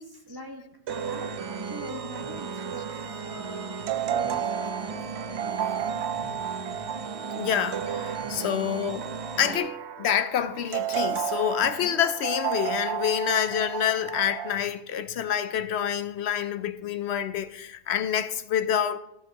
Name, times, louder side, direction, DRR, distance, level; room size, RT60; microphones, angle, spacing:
voice 1, 0.0-5.6 8.9-9.1 11.6-12.0, right 1 dB, 20° right, 1.2 m, -43 dB
sound 1, 0.9-9.6, right 5 dB, 40° right, 0.6 m, -37 dB
sound 2, 0.9-14.6, right 9 dB, 75° right, 0.9 m, -33 dB
voice 2, 7.3-9.1 9.4-19.0, left 9 dB, 75° left, 0.9 m, -27 dB
14.5 x 7.4 x 2.9 m
omnidirectional pair, 1.2 m